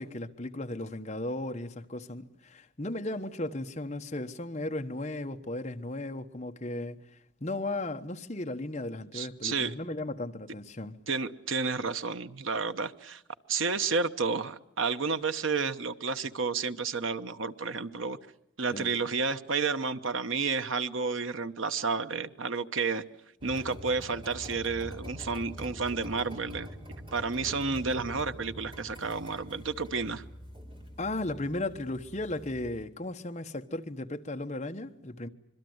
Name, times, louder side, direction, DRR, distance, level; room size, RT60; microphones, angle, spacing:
voice 1, 0.0-7.0 7.4-11.0 18.7-18.9 31.0-35.3, left 2 dB, 35° left, 1.1 m, -35 dB
voice 2, 9.1-9.7 11.1-13.2 13.5-18.2 18.6-23.0 23.4-26.7 27.1-30.2, right 4 dB, 80° right, 1.0 m, -31 dB
sound 1, 23.4-32.8, equal, 25° right, 3.9 m, -45 dB
25.5 x 23.0 x 8.0 m
head